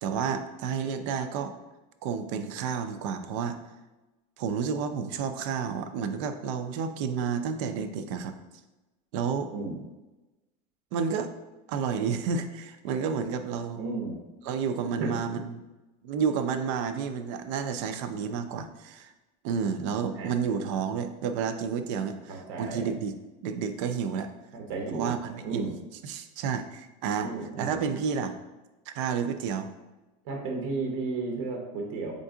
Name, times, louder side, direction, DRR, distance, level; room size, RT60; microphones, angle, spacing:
voice 1, 0.0-1.5 2.0-3.6 4.4-8.3 9.1-9.5 10.9-11.3 11.7-13.8 14.4-15.7 16.0-19.1 19.4-23.1 23.4-24.3 24.9-25.7 26.0-27.3 27.6-28.3 28.9-29.7, right 6 dB, 60° right, 9 dB, 0.4 m, -30 dB
voice 2, 13.8-14.2 15.0-15.1 20.2-20.3 22.3-22.9 24.5-25.1 25.4-25.7 27.2-27.8 30.2-32.1, right 3 dB, 75° right, 1 dB, 0.9 m, -33 dB
3.8 x 3.5 x 3.7 m, 1.1 s
supercardioid pair, 155°, 18 cm